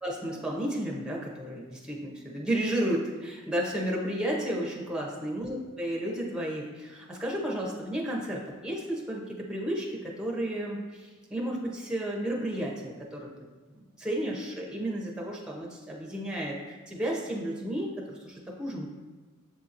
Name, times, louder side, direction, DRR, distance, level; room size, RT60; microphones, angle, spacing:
voice 1, 0.0-13.3 14.0-18.9, right 1 dB, 5° right, -2 dB, 0.6 m, -32 dB
7.4 x 2.8 x 2.5 m, 1.4 s
head